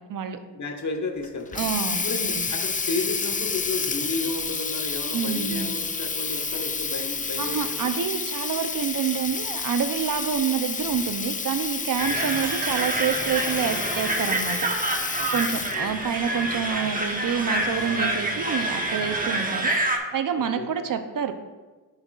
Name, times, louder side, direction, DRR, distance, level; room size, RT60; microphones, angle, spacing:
voice 1, 0.0-0.4 1.5-2.0 2.3-2.5 5.1-5.7 7.4-14.6 15.3-21.3, right 7 dB, 55° right, 9 dB, 0.8 m, -28 dB
voice 2, 0.5-1.6 2.0-7.9 15.2-16.0 20.5-20.7, left 3 dB, 45° left, 4 dB, 1.1 m, -32 dB
Water tap faucet, 1.2-15.9, left 5 dB, 20° left, 0.4 m, -30 dB
sound 1, 12.0-20.0, right 1 dB, 20° right, 1.2 m, -27 dB
9.7 x 5.6 x 2.5 m, 1.3 s
cardioid pair, 55°, 39 cm